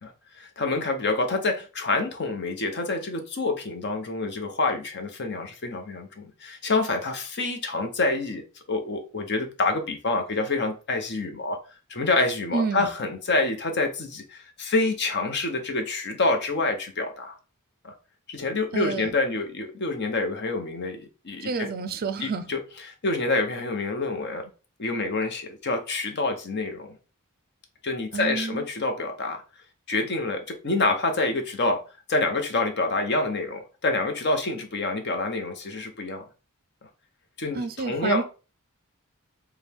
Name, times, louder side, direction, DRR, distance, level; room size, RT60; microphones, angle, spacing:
voice 1, 0.0-8.4 8.7-11.6 11.9-17.4 17.8-17.9 18.3-21.7 22.2-24.5 24.8-27.0 27.8-29.4 29.9-31.8 32.1-36.2 37.4-38.2, left 3 dB, 50° left, 0.8 m, -27 dB
voice 2, 12.5-12.9 18.7-19.1 21.4-22.5 28.1-28.6 37.5-38.2, right 4 dB, 45° right, 0.4 m, -29 dB
4.7 x 2.3 x 3.5 m
head